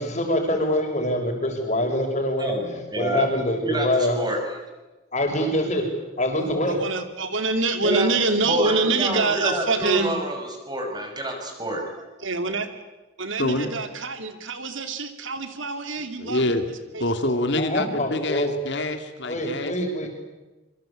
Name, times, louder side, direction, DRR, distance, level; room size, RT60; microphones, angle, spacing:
voice 1, 0.0-2.5 3.0-4.2 5.1-5.8 6.2-6.8 17.6-18.5 19.2-20.1, left 1 dB, 35° left, 3 dB, 6.3 m, -24 dB
voice 2, 2.4-3.3 3.6-4.4 7.8-8.1 8.5-12.1, right 1 dB, 20° right, 3 dB, 6.3 m, -27 dB
voice 3, 6.7-10.2 12.2-12.7 13.2-16.5 16.9-17.0, right 3 dB, 70° right, 8 dB, 2.8 m, -25 dB
voice 4, 13.4-13.7 16.0-16.7 17.0-19.7 20.0-20.1, left 1 dB, 60° left, 7 dB, 2.4 m, -26 dB
26.5 x 24.5 x 8.7 m, 1.1 s
head